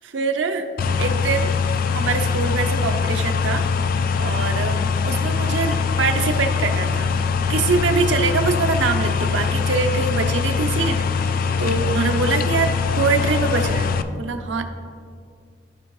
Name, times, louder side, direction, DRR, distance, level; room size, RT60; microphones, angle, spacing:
voice 1, 0.1-0.6 1.0-1.5 1.9-3.7 4.2-4.8 5.0-7.1 7.5-11.0 11.2-14.6, right 4 dB, 90° right, 6 dB, 0.6 m, -24 dB
sound 1, 0.8-14.0, left 5 dB, 50° left, 0.3 m, -22 dB
12.5 x 4.5 x 3.0 m, 2.2 s
head